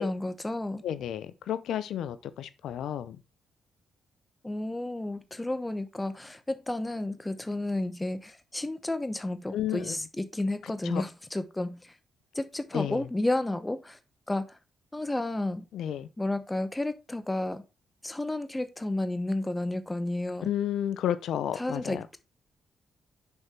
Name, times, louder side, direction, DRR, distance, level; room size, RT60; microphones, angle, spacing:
voice 1, 0.0-0.8 4.4-12.0 12.3-14.0 14.3-14.6 14.9-15.7 16.2-17.6 18.0-20.5 21.5-22.2, left 1 dB, 15° left, 0.9 m, -32 dB
voice 2, 0.8-3.2 9.5-10.0 10.8-11.0 12.7-13.1 15.7-16.1 20.4-22.0, left 10 dB, 75° left, 0.6 m, -31 dB
5.7 x 5.5 x 4.4 m
hypercardioid pair, 45°, 0 cm